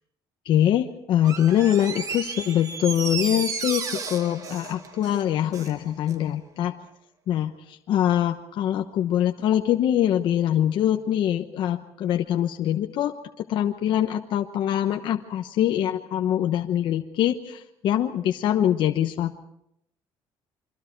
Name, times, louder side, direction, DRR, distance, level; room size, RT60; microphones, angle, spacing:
voice 1, 0.5-6.7 7.3-13.1 13.5-19.4, left 11 dB, 55° left, 4 dB, 1.0 m, -24 dB
Door, 1.2-5.8 6.1-6.2, right 5 dB, 35° right, 1.7 m, -33 dB
27.5 x 24.5 x 4.6 m, 0.78 s
cardioid pair, 160°, 10 cm